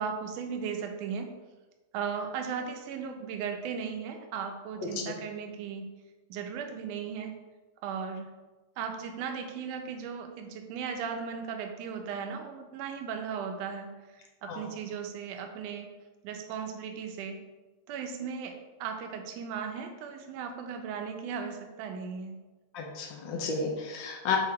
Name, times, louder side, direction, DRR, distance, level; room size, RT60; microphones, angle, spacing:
voice 1, 0.0-1.3 1.9-5.9 6.3-7.3 7.8-8.3 8.8-13.9 14.4-15.9 16.2-17.4 17.9-22.4, right 6 dB, 70° right, 4 dB, 1.8 m, -36 dB
voice 2, 4.8-5.1 14.4-14.7 22.7-24.4, left 5 dB, 70° left, 0 dB, 1.1 m, -32 dB
7.7 x 3.7 x 4.8 m, 1.2 s
omnidirectional pair, 3.4 m